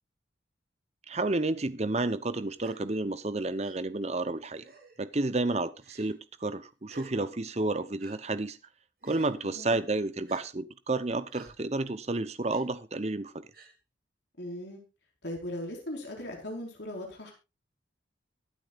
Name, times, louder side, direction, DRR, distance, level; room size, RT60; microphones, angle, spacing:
voice 1, 1.1-4.6 5.0-8.6 9.1-13.5, right 2 dB, 35° right, 0.8 m, -31 dB
Gasp, 2.6-2.8 3.6-3.8 4.6-5.0 5.8-6.2 6.9-7.1 8.0-8.2 9.0-9.4 10.3-10.4 11.3-11.5 12.5-12.6 13.5-13.7, right 2 dB, 50° right, 2.9 m, -51 dB
voice 2, 9.4-9.8 14.4-14.8 15.2-17.3, left 1 dB, 60° left, 4.7 m, -38 dB
23.0 x 8.6 x 2.5 m
head